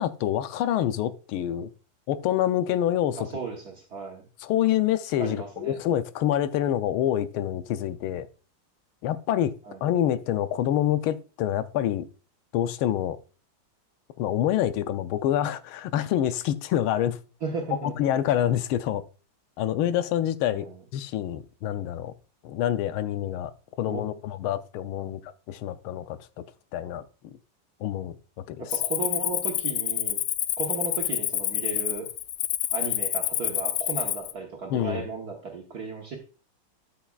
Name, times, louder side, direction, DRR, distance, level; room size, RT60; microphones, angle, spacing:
voice 1, 0.0-1.7 2.1-3.3 4.4-8.3 9.0-9.5 9.8-12.1 12.5-13.2 14.2-17.2 17.8-19.0 19.6-20.7 20.9-22.1 22.4-23.5 23.8-26.2 26.7-27.3 27.8-28.2 28.5-28.6 34.7-35.1, left 11 dB, 90° left, 1.5 m, -26 dB
voice 2, 3.2-4.2 5.2-5.8 9.7-9.8 17.4-18.0 20.5-20.8 23.9-24.0 25.0-25.2 28.6-30.2 30.6-32.1 32.7-36.2, right 4 dB, 55° right, 1.5 m, -35 dB
Cricket, 28.7-34.3, left 13 dB, 75° left, 1.0 m, -28 dB
12.5 x 5.8 x 2.4 m
omnidirectional pair, 2.2 m